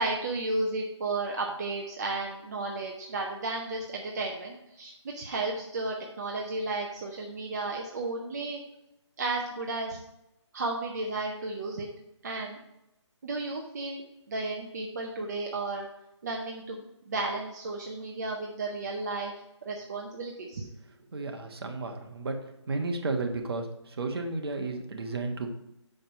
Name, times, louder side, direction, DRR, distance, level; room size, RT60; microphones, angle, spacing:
voice 1, 0.0-8.6 9.2-10.0 10.5-11.9 12.2-12.6 13.2-14.0 14.3-15.9 16.2-19.3 19.6-20.7, right 2 dB, 35° right, 0 dB, 0.7 m, -33 dB
voice 2, 21.1-22.4 22.7-25.5, right 3 dB, 55° right, 4 dB, 1.2 m, -33 dB
5.9 x 5.2 x 5.0 m, 0.87 s
hypercardioid pair, 170°, 16 cm